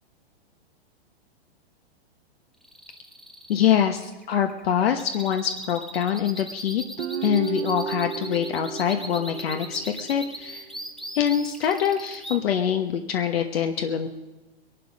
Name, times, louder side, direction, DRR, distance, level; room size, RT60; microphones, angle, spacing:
sound 1, 2.6-12.4, equal, ahead, 0.7 m, -39 dB
voice 1, 3.5-6.8 7.2-10.7 11.1-14.1, left 9 dB, 65° left, 5 dB, 1.2 m, -24 dB
Guitar, 7.0-10.3, right 8 dB, 80° right, 1.2 m, -33 dB
21.5 x 11.5 x 5.2 m, 1.1 s
hypercardioid pair, 145°, 32 cm